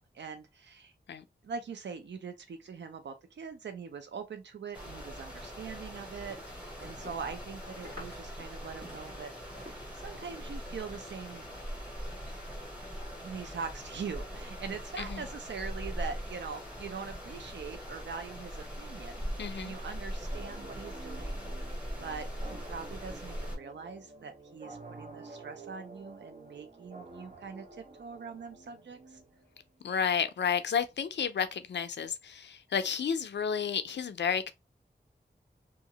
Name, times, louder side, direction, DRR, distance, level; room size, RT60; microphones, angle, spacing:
voice 1, 0.1-0.9 1.4-9.3 10.0-11.4 13.2-19.2 19.6-21.4 22.0-29.2, right 5 dB, 90° right, 0.5 m, -42 dB
sound 1, 4.7-23.6, equal, 5° right, 1.1 m, -41 dB
sound 2, 6.2-11.1, left 1 dB, 65° right, 1.7 m, -52 dB
voice 2, 19.4-19.8 29.8-34.5, left 7 dB, 80° left, 0.4 m, -31 dB
sound 3, 20.3-29.7, right 3 dB, 50° right, 0.8 m, -50 dB
2.7 x 2.4 x 2.8 m
wide cardioid pair, 100°, 18 cm